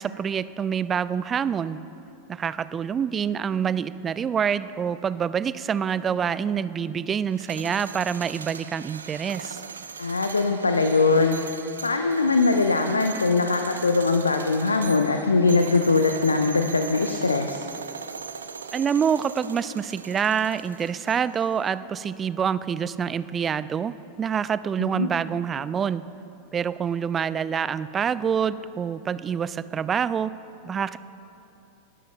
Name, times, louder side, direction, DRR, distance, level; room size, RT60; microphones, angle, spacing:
voice 1, 0.0-1.8 2.3-9.6 18.7-26.0 26.5-30.3 30.6-31.0, right 7 dB, 20° right, 16 dB, 0.4 m, -26 dB
sound 1, 7.3-21.4, right 6 dB, 70° right, 0.5 m, -39 dB
voice 2, 10.0-11.4 11.8-17.6 24.8-25.1, left 3 dB, 80° left, 6 dB, 0.6 m, -21 dB
30.0 x 13.0 x 2.2 m, 2.8 s
figure-of-eight pair, 90°, 0 cm